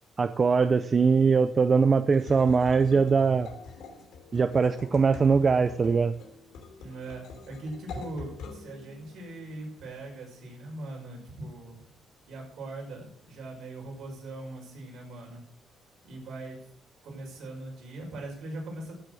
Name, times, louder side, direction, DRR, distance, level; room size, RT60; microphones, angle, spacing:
voice 1, 0.2-3.5 4.3-6.1, right 5 dB, 30° right, 11 dB, 0.5 m, -22 dB
sound 1, 2.1-10.0, left 4 dB, 85° left, 3.1 m, -45 dB
voice 2, 6.8-11.9 12.3-15.4 16.0-16.7 17.0-19.0, right 2 dB, 65° right, -1 dB, 6.0 m, -40 dB
14.5 x 7.6 x 6.4 m, 0.65 s
cardioid pair, 145°, 0 cm